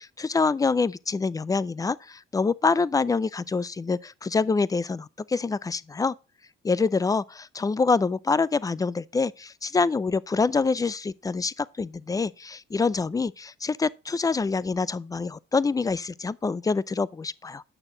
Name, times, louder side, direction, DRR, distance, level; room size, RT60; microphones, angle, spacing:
voice 1, 0.0-6.1 6.6-17.6, left 4 dB, 15° left, 0.4 m, -26 dB
8.9 x 6.4 x 3.8 m
cardioid pair, 90°, 20 cm